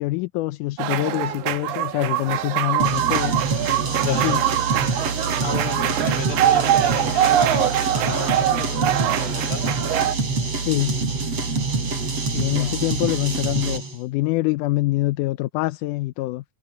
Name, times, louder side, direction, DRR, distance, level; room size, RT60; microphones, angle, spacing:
voice 1, 0.0-3.4 4.0-4.5 10.6-11.0 12.3-16.4, left 19 dB, 90° left, 2.2 m, -25 dB
sound 1, 0.8-10.2, right 13 dB, 80° right, 2.3 m, -23 dB
sound 2, 2.8-14.0, right 3 dB, 50° right, 5.6 m, -25 dB
voice 2, 4.0-4.5 5.4-9.7 12.4-12.8, left 4 dB, 75° left, 4.8 m, -34 dB
omnidirectional pair, 3.5 m